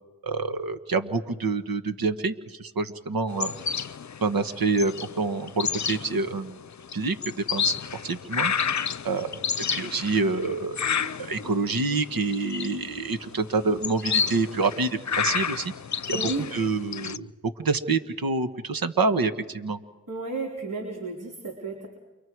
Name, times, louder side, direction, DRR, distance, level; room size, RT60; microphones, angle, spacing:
voice 1, 0.2-3.5 4.2-6.6 6.9-7.8 8.0-8.5 9.0-9.3 9.7-10.8 11.2-15.7 16.1-16.2 16.5-17.3 17.6-19.8, right 3 dB, 75° right, 9 dB, 1.5 m, -27 dB
sound 1, 3.3-17.2, left 7 dB, 50° left, 0.7 m, -31 dB
voice 2, 16.1-16.5 20.1-21.9, right 3 dB, 60° right, -1 dB, 4.1 m, -32 dB
29.5 x 24.0 x 4.8 m, 1.2 s
cardioid pair, 45°, 36 cm